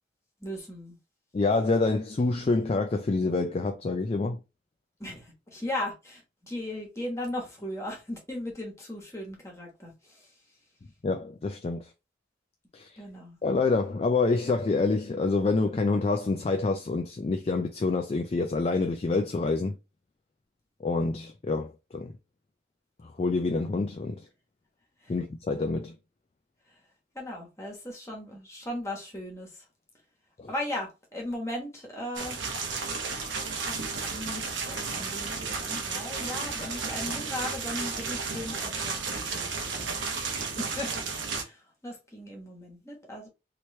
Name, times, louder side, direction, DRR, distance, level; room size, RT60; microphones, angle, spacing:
voice 1, 0.4-0.9 5.0-10.3 13.0-13.4 25.0-25.1 27.1-29.6 30.5-32.4 33.6-33.8 34.1-40.0 40.6-40.9 41.3-43.3, left 1 dB, 15° left, 1.2 m, -37 dB
voice 2, 1.3-4.4 11.0-11.9 12.7-12.9 13.4-19.8 20.8-22.1 23.0-24.2 25.1-25.9 30.4-30.5, left 3 dB, 35° left, 0.3 m, -27 dB
sound 1, 32.2-41.4, right 4 dB, 80° right, 0.9 m, -33 dB
3.1 x 3.0 x 3.1 m
head